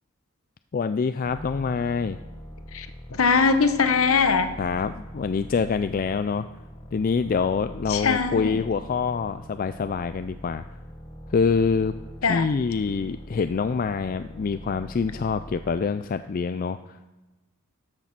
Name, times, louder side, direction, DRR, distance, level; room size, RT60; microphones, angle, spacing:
voice 1, 0.7-2.2 4.6-6.5 6.9-10.6 11.3-11.9 12.3-17.1, left 5 dB, 40° left, 11 dB, 0.3 m, -26 dB
sound 1, 1.2-16.0, equal, 20° left, 1.0 m, -42 dB
voice 2, 2.7-4.5 7.9-8.6 12.2-12.5, left 5 dB, 65° left, 10 dB, 0.8 m, -22 dB
13.0 x 6.6 x 5.9 m, 1.1 s
head